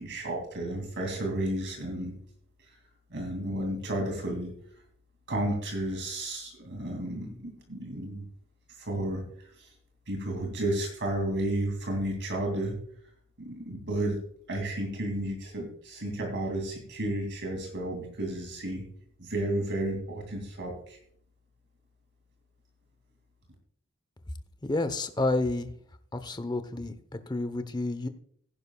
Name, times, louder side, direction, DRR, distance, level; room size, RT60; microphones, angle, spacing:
voice 1, 0.0-2.2 3.1-4.5 5.3-8.2 8.8-9.2 9.6-9.7 10.1-12.8 13.4-14.2 14.5-18.8 19.2-21.0, right 1 dB, 60° right, 2 dB, 2.6 m, -32 dB
voice 2, 24.6-25.7 26.1-28.1, left 2 dB, 20° left, 10 dB, 0.8 m, -30 dB
15.5 x 10.5 x 2.3 m, 0.63 s
head